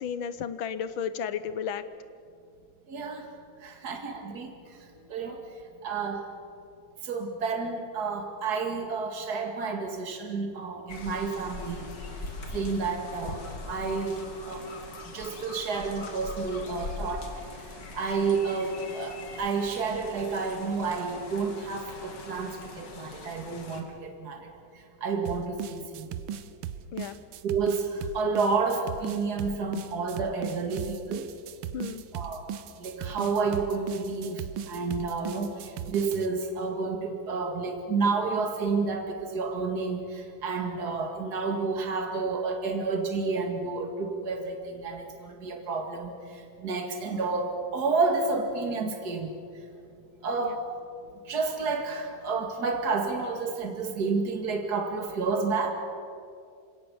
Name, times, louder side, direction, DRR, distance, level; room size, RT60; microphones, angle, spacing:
voice 1, 0.0-1.8 26.9-27.2 31.7-32.0 50.4-50.6, left 7 dB, 85° left, 13 dB, 1.7 m, -33 dB
voice 2, 2.9-3.3 3.6-4.5 5.1-5.4 5.8-6.3 7.0-11.9 12.5-14.7 15.1-17.3 17.9-24.5 25.0-26.1 27.4-31.3 32.1-32.4 32.8-49.3 50.2-50.6 51.3-55.7, right 4 dB, 55° right, 4 dB, 2.5 m, -30 dB
sound 1, 10.9-23.8, left 3 dB, 60° left, 2.9 m, -42 dB
sound 2, 25.3-36.3, right 9 dB, 85° right, 1.6 m, -37 dB
27.5 x 17.5 x 7.1 m, 2.4 s
omnidirectional pair, 2.2 m